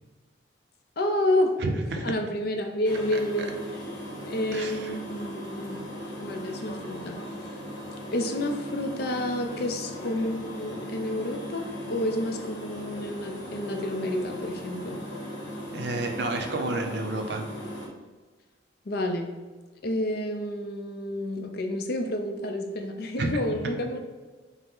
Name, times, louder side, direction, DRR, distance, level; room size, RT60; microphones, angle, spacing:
voice 1, 1.0-1.5 2.0-3.6 4.3-5.8 6.2-7.2 8.1-15.0 18.9-19.3 19.8-24.0, left 1 dB, 55° left, 4 dB, 0.5 m, -29 dB
voice 2, 1.6-2.1 4.5-4.9 15.7-17.5 23.2-23.4, right 2 dB, 60° right, 4 dB, 0.5 m, -30 dB
sound 1, 2.9-17.9, equal, 70° left, 1.1 m, -38 dB
5.5 x 2.0 x 3.7 m, 1.3 s
head